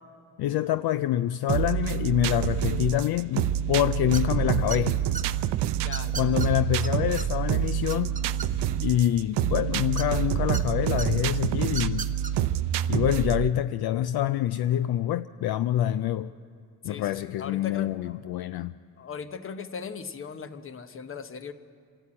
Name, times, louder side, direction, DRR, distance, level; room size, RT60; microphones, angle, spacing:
voice 1, 0.4-5.0 6.1-8.2 8.8-12.1 12.9-16.3 16.8-18.7, left 12 dB, 65° left, 0.5 m, -26 dB
sound 1, 1.5-13.5, right 11 dB, 75° right, 0.6 m, -27 dB
sound 2, 4.1-4.4 4.7-5.2 5.9-6.5 6.8-6.9 7.2-7.3 7.6-8.8 10.0-10.6 11.0-11.1 11.7-12.3, right 5 dB, 20° right, 0.8 m, -35 dB
voice 2, 5.8-6.4 16.8-18.2 19.0-21.5, left 6 dB, 30° left, 0.9 m, -39 dB
26.5 x 12.5 x 8.7 m
cardioid pair, 140°, 41 cm